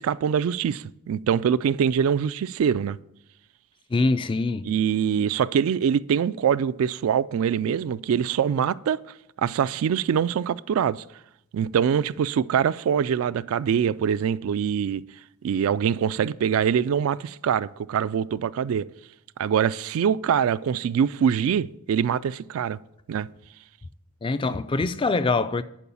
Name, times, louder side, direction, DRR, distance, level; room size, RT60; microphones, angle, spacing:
voice 1, 0.0-3.0 4.6-9.0 9.4-11.0 11.5-15.0 15.4-18.9 19.4-22.8 23.1-23.3, right 8 dB, 70° right, 0.3 m, -24 dB
voice 2, 3.9-4.7 24.2-25.6, left 3 dB, 20° left, 0.3 m, -24 dB
11.0 x 4.7 x 7.0 m
head